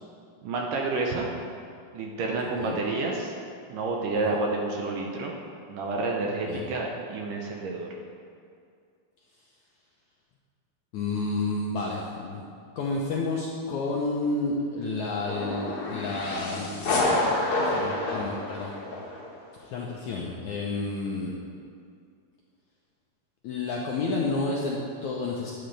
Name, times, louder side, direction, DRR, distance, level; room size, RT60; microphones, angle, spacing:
voice 1, 0.4-1.3 1.9-3.3 3.7-5.3 5.7-7.9, right 3 dB, 70° right, 0 dB, 2.2 m, -29 dB
voice 2, 10.9-12.4 12.8-17.0 17.2-18.7 19.7-21.3 23.4-25.5, left 3 dB, 75° left, -3 dB, 1.8 m, -30 dB
sound 1, 15.2-19.3, left 2 dB, 50° left, 1.8 m, -28 dB
12.5 x 9.2 x 3.4 m, 2.3 s
omnidirectional pair, 4.4 m